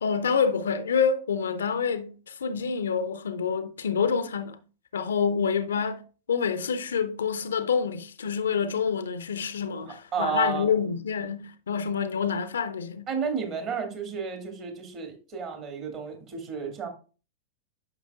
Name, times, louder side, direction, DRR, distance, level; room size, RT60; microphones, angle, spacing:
voice 1, 0.0-4.6 4.9-13.1, left 6 dB, 65° left, 0.6 m, -27 dB
voice 2, 10.1-10.6 13.1-16.9, right 6 dB, 35° right, 2.2 m, -32 dB
9.4 x 6.2 x 2.4 m
figure-of-eight pair, 90°, 0 cm